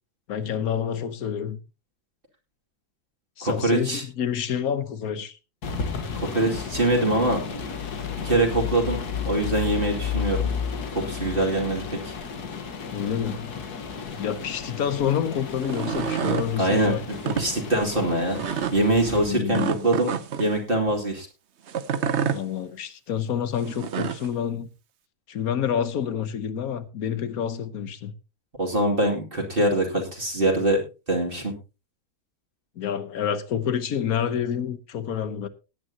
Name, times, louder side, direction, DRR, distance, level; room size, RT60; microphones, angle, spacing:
voice 1, 0.3-1.6 3.4-5.4 8.1-8.2 12.9-13.6 14.2-17.4 19.3-19.9 22.3-24.7 25.3-28.1 32.8-35.5, left 8 dB, 70° left, 1.5 m, -28 dB
voice 2, 3.4-4.0 6.1-7.4 8.2-10.5 11.0-12.2 16.6-17.0 17.4-18.4 18.7-21.3 28.6-31.5, right 2 dB, 35° right, 2.8 m, -24 dB
sound 1, 5.6-19.3, left 6 dB, 85° left, 2.0 m, -33 dB
sound 2, 15.6-16.5 17.1-17.5 18.4-18.8 19.5-20.5 21.7-22.4 23.6-24.3, right 8 dB, 55° right, 1.0 m, -28 dB
18.5 x 9.5 x 2.8 m
omnidirectional pair, 1.6 m